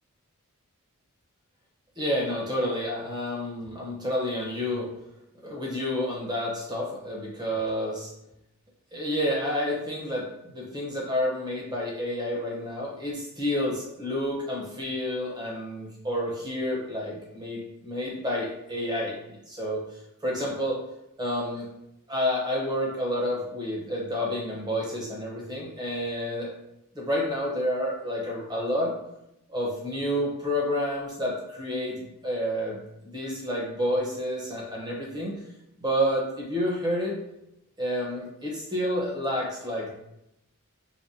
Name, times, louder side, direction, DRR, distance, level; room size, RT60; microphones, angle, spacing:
voice 1, 2.0-4.9 5.4-8.1 8.9-10.2 10.5-19.2 19.5-19.8 20.2-20.8 21.2-21.7 22.1-26.5 26.9-28.9 29.5-32.8 33.0-35.3 35.8-37.1 37.8-39.9, equal, 20° right, -4 dB, 0.9 m, -29 dB
5.1 x 2.2 x 2.8 m, 0.83 s
head